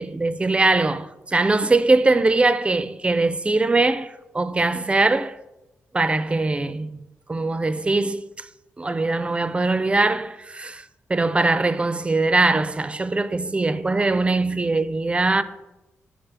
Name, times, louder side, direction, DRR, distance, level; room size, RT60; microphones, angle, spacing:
voice 1, 0.0-5.4 5.9-6.9 7.3-8.5 8.8-15.4, right 3 dB, 20° right, 0.4 m, -21 dB
5.8 x 5.0 x 3.3 m
cardioid pair, 65°, 5 cm